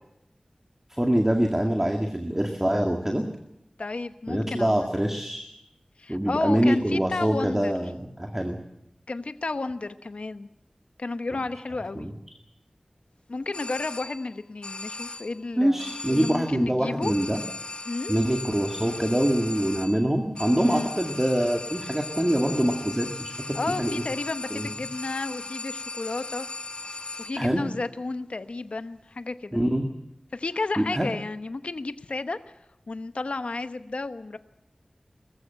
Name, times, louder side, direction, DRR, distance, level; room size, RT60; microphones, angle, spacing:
voice 1, 0.9-3.3 4.3-5.5 6.1-8.6 12.0-12.1 15.6-17.4 18.1-24.0 24.5-24.7 27.3-27.6 29.5-29.9 30.8-31.1, equal, 15° right, 3 dB, 2.0 m, -24 dB
voice 2, 3.8-4.9 6.0-7.7 9.1-10.5 11.0-12.1 13.3-17.1 17.9-18.1 20.6-20.9 23.5-26.5 27.2-29.6 30.3-32.4 32.9-34.4, left 3 dB, 80° left, 10 dB, 1.0 m, -32 dB
sound 1, 13.5-14.3 14.6-15.4 15.8-16.6 17.0-27.5, left 3 dB, 60° left, 1.7 m, -38 dB
21.0 x 15.0 x 8.9 m, 0.87 s
wide cardioid pair, 60°, 2 cm